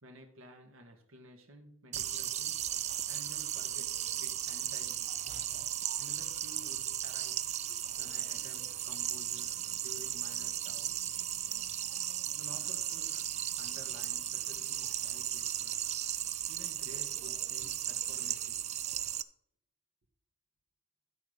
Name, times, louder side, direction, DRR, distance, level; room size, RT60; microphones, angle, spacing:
voice 1, 0.0-2.7 3.1-5.2 6.0-7.5 8.0-11.2 12.3-13.3 13.6-15.8 16.5-18.6, right 1 dB, 75° right, 1.9 m, -53 dB
sound 1, 1.9-19.2, right 11 dB, 35° right, 0.4 m, -36 dB
sound 2, 8.3-15.0, left 1 dB, ahead, 3.1 m, -65 dB
13.0 x 4.8 x 6.6 m
head